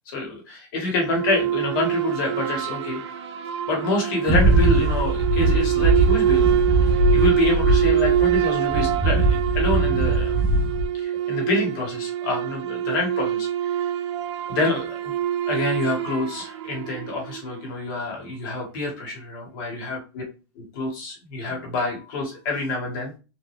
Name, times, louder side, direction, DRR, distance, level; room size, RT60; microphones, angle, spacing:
voice 1, 0.1-3.0 3.7-10.5 10.9-13.9 14.5-15.1 15.5-20.2 20.5-23.1, left 3 dB, 45° left, 0 dB, 2.1 m, -27 dB
sound 1, 1.0-17.6, right 10 dB, 75° right, 0.6 m, -25 dB
sound 2, 4.3-8.5 8.7-10.9, right 2 dB, 5° right, 0.9 m, -21 dB
4.4 x 3.3 x 3.4 m, 0.32 s
supercardioid pair, 170°, 15 cm